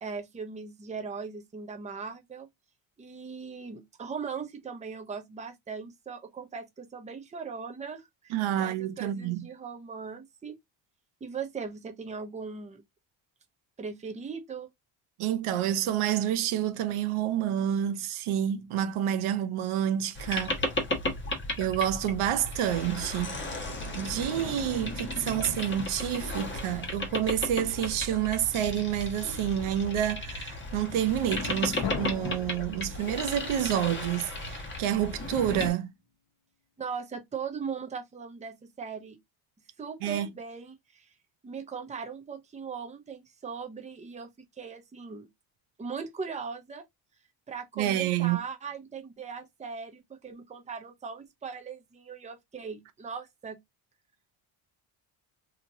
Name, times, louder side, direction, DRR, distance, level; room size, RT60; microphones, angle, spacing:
voice 1, 0.0-2.5 3.0-10.6 11.2-12.8 13.8-14.7 36.8-39.2 39.8-41.1 41.4-44.3 44.6-45.3 45.8-46.8 47.5-53.6, right 5 dB, 15° right, 0.5 m, -39 dB
voice 2, 8.3-9.4 15.2-20.6 21.6-23.5 23.9-35.9 40.0-40.3 47.8-48.4, right 11 dB, 80° right, 0.7 m, -28 dB
Boat Water vehicle, 20.2-35.7, left 2 dB, 25° left, 1.1 m, -35 dB
sound 1, 23.8-26.9 31.8-35.4, left 7 dB, 55° left, 0.8 m, -44 dB
2.9 x 2.8 x 2.5 m
cardioid pair, 120°, 49 cm